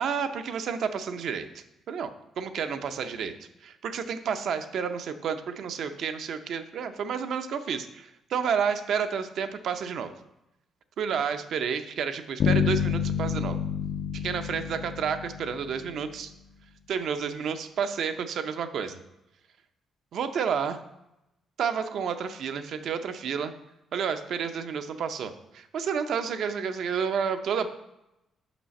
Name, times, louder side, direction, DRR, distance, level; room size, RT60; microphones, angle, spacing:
voice 1, 0.0-3.3 3.6-10.1 11.0-13.6 14.1-16.3 16.9-19.0 20.1-20.8 21.6-23.5 23.9-27.7, right 7 dB, 70° right, 9 dB, 0.5 m, -30 dB
sound 1, 12.4-16.1, left 7 dB, 65° left, 0.4 m, -28 dB
6.0 x 5.6 x 4.1 m, 0.90 s
cardioid pair, 90°, 0 cm